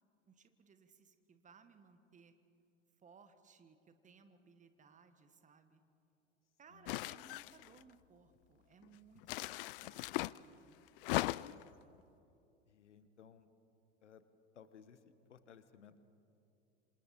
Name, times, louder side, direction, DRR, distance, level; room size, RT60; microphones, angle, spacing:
voice 1, 0.3-2.3 3.0-5.8 6.6-10.8, right 5 dB, 20° right, 9 dB, 1.5 m, -63 dB
sound 1, 6.9-7.8 9.2-10.4 11.0-11.7, left 18 dB, 50° left, 0.4 m, -38 dB
voice 2, 12.7-13.5 14.0-14.2 14.5-16.0, left 7 dB, 75° left, 12 dB, 1.2 m, -60 dB
26.5 x 26.5 x 4.2 m, 2.7 s
figure-of-eight pair, 85°, 36 cm